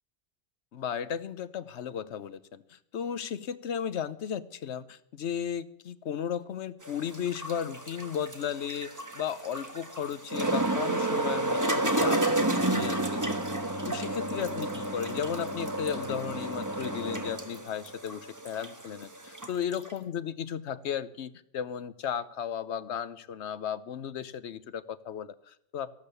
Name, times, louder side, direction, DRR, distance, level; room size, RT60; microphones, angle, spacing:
voice 1, 0.7-13.0 13.3-25.9, left 8 dB, 75° left, 15 dB, 1.1 m, -35 dB
sound 1, 6.8-19.9, right 2 dB, 15° right, 1.3 m, -31 dB
14.0 x 12.0 x 6.8 m, 0.78 s
omnidirectional pair, 1.1 m